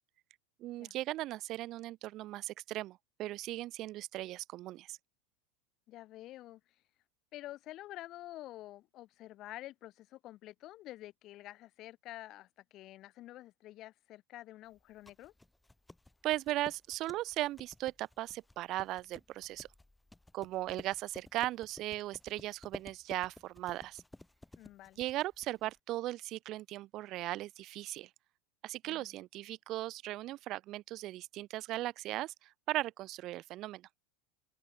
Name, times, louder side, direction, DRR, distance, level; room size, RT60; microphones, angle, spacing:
voice 1, 0.6-5.0 16.2-19.7 20.3-24.0 25.0-28.1 28.6-33.8, right 16 dB, 50° right, 0.7 m, -38 dB
voice 2, 5.9-6.8 7.3-15.3 24.5-25.0 28.8-29.2, left 15 dB, 45° left, 3.4 m, -49 dB
sound 1, 14.7-25.8, left 2 dB, 5° left, 1.1 m, -54 dB
hypercardioid pair, 100°, 0 cm